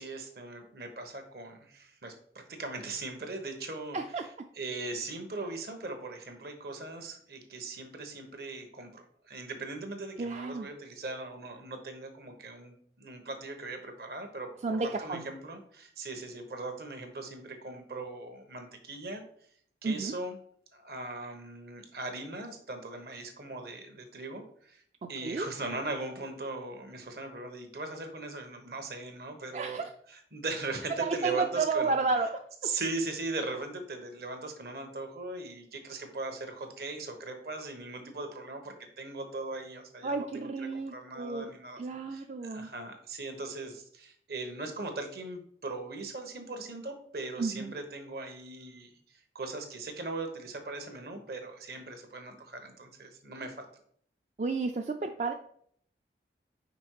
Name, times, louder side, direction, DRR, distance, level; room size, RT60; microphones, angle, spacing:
voice 1, 0.0-4.3 4.5-19.2 19.8-20.4 20.7-24.8 25.1-32.0 32.6-41.8 42.1-53.7, right 3 dB, 60° right, 6 dB, 1.1 m, -39 dB
voice 2, 3.9-4.3 10.2-10.7 14.6-15.2 19.8-20.1 25.0-25.5 29.5-29.9 31.0-32.4 40.0-41.5 41.8-42.7 47.4-47.7 54.4-55.3, right 4 dB, 40° right, 5 dB, 0.4 m, -32 dB
5.2 x 4.7 x 4.6 m, 0.62 s
head